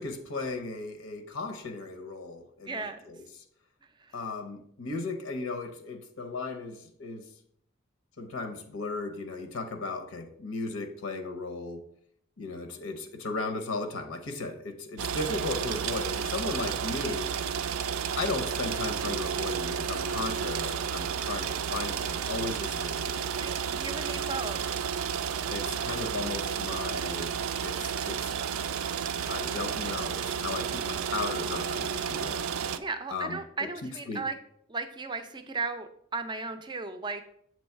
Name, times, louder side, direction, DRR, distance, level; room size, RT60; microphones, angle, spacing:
voice 1, 0.0-3.4 4.1-7.3 8.2-11.8 12.4-17.4 18.2-23.2 25.5-27.3 27.6-28.3 29.3-32.4 33.1-34.2, left 3 dB, 80° left, 6 dB, 0.8 m, -36 dB
voice 2, 2.7-3.0 23.3-24.7 32.8-34.3 34.7-37.3, right 4 dB, 20° right, 8 dB, 0.4 m, -35 dB
sound 1, 15.0-32.8, right 7 dB, 85° right, 0.4 m, -32 dB
7.5 x 3.1 x 4.5 m, 0.67 s
head